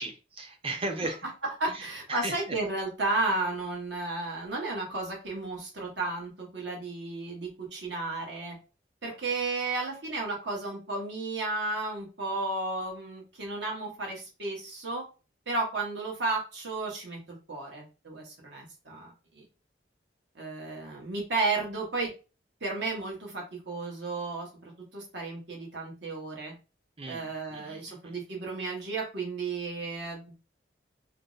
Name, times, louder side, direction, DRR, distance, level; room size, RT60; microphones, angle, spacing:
voice 1, 0.0-1.2 1.7-1.8 2.1-2.6 27.0-28.1, right 2 dB, 30° right, 4 dB, 0.6 m, -36 dB
voice 2, 1.4-8.6 9.0-15.0 15.5-19.4 20.3-22.1 22.6-26.5 27.0-30.2, right 3 dB, 75° right, -1 dB, 1.0 m, -33 dB
2.6 x 2.0 x 3.8 m, 0.32 s
head